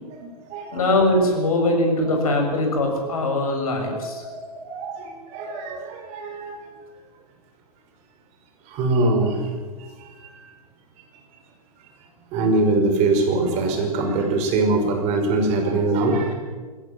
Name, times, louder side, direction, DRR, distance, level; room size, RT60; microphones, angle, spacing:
voice 1, 0.2-0.8 2.1-2.4 3.8-6.6 8.7-9.5 10.0-10.4 12.3-16.3, right 2 dB, 35° right, 4 dB, 5.3 m, -23 dB
voice 2, 0.7-4.2, left 1 dB, 65° left, 3 dB, 6.8 m, -21 dB
21.5 x 17.0 x 7.8 m, 1.4 s
figure-of-eight pair, 110°, 20 cm